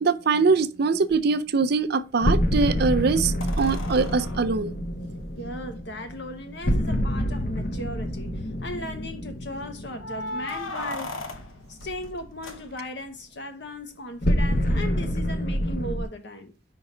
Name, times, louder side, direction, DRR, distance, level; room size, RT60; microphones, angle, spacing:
voice 1, 0.0-4.7, right 4 dB, 50° right, 0.4 m, -23 dB
sound 1, 1.1-1.2 3.4-5.8 6.7-6.8 7.1-7.2 7.8-8.3 10.0-13.1 15.6-15.7, left 2 dB, 85° left, 1.0 m, -38 dB
sound 2, 2.2-11.2 14.2-16.0, equal, 40° left, 0.8 m, -27 dB
voice 2, 5.4-11.2 11.7-16.5, left 1 dB, 60° left, 1.1 m, -37 dB
5.3 x 3.8 x 5.9 m
head